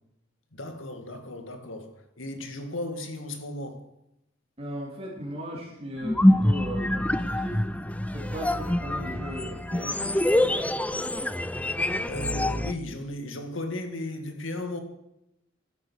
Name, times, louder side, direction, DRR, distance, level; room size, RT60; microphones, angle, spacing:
voice 1, 0.5-3.9 5.3-5.4 12.1-14.8, left 1 dB, 75° left, 2.2 m, -35 dB
voice 2, 4.6-7.6 8.1-10.8, equal, 30° right, 3.2 m, -38 dB
sound 1, 6.0-12.7, left 1 dB, 5° left, 0.5 m, -25 dB
14.0 x 12.0 x 6.4 m
head